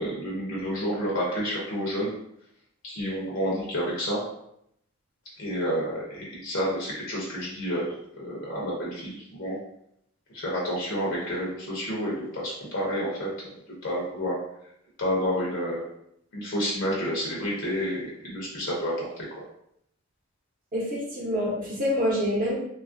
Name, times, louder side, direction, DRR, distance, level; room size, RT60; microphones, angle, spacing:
voice 1, 0.0-2.1 2.8-4.2 5.4-9.6 10.3-13.5 13.8-14.4 15.0-15.8 16.3-19.4, equal, 60° left, -4 dB, 0.6 m, -30 dB
voice 2, 20.7-22.5, equal, 40° right, -5 dB, 0.7 m, -26 dB
3.1 x 2.3 x 2.5 m, 0.76 s
head